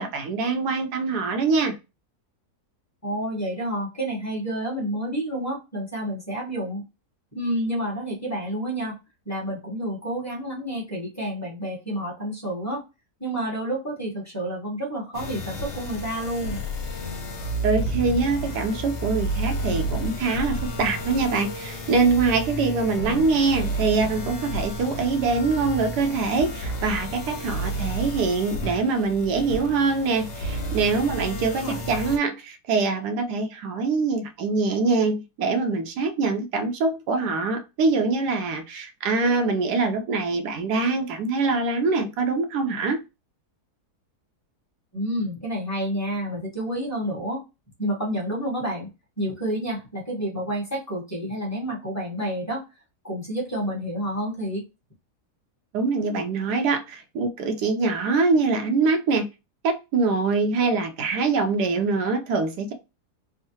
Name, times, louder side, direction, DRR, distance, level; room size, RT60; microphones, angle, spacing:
voice 1, 0.0-1.7 17.6-43.0 55.7-59.3 59.6-62.7, right 4 dB, 90° right, 1.2 m, -24 dB
voice 2, 3.0-6.8 7.3-8.9 9.2-12.8 13.2-16.6 31.6-31.8 44.9-47.4 47.8-48.9 49.2-52.6 53.0-54.6, equal, 10° left, 0.9 m, -29 dB
sound 1, 15.1-32.2, right 1 dB, 90° left, 1.5 m, -31 dB
3.6 x 2.1 x 2.7 m
omnidirectional pair, 1.7 m